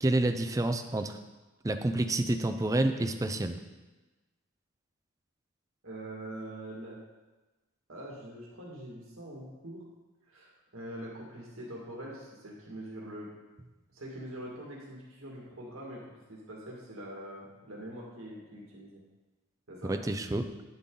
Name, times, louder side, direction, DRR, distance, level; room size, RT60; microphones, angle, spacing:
voice 1, 0.0-1.2 1.6-3.6 19.9-20.5, right 1 dB, 15° right, 6 dB, 0.5 m, -28 dB
voice 2, 5.8-7.0 7.9-9.8 10.2-13.3 13.9-19.0 19.7-19.9, right 1 dB, 80° right, -3 dB, 2.0 m, -44 dB
9.8 x 7.8 x 3.8 m, 1.2 s
head